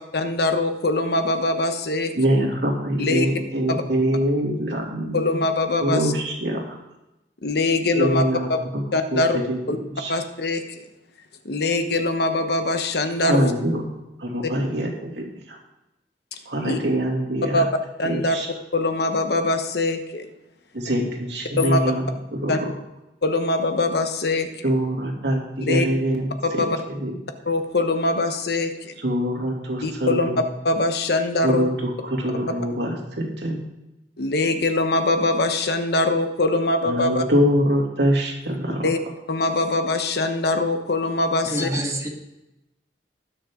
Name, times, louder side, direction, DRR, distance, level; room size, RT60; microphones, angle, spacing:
voice 1, 0.1-2.1 3.0-3.3 3.7-3.8 5.1-6.0 7.4-8.2 8.5-8.6 8.9-9.4 9.7-9.8 10.1-10.8 11.4-13.5 16.6-16.8 17.5-17.6 18.0-18.4 18.7-20.3 21.6-21.8 22.5-22.6 23.2-24.5 25.7-25.9 26.6-26.8 27.5-28.9 29.8-30.3 30.6-31.7 34.2-37.2 38.8-39.0 39.3-41.7, left 2 dB, 65° left, 7 dB, 1.1 m, -22 dB
voice 2, 2.1-5.2 5.8-6.8 7.9-8.8 9.1-10.1 13.3-13.8 14.2-15.6 16.4-17.7 18.0-18.5 20.7-22.0 22.3-22.7 24.6-26.6 27.0-27.2 29.0-30.4 31.4-33.6 36.8-38.9, equal, 75° right, 0 dB, 2.7 m, -24 dB
voice 3, 41.4-42.1, right 1 dB, 20° right, -1 dB, 2.0 m, -26 dB
19.5 x 6.7 x 3.8 m, 0.93 s
head